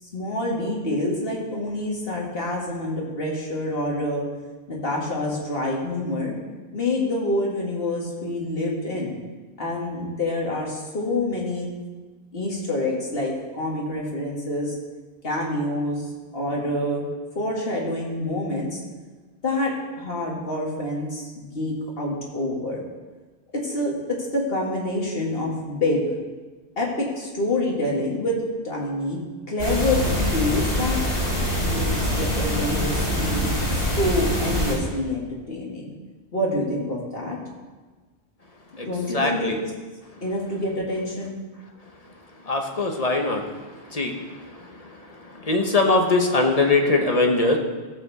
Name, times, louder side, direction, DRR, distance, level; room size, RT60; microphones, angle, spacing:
voice 1, 0.1-4.3 4.7-6.3 6.7-9.2 9.6-11.7 12.3-14.8 15.2-17.0 17.4-18.8 19.4-22.8 23.5-26.1 26.8-28.4 28.6-31.0 31.6-35.9 36.3-37.4 38.8-39.6 40.2-41.3, left 1 dB, 60° left, -2 dB, 2.2 m, -27 dB
sound 1, 29.6-34.7, equal, 80° left, 3.2 m, -24 dB
voice 2, 39.1-39.5 42.5-43.4 43.9-44.1 45.5-47.6, left 3 dB, 35° left, 3 dB, 1.1 m, -21 dB
15.0 x 7.0 x 4.1 m, 1.3 s
omnidirectional pair, 1.1 m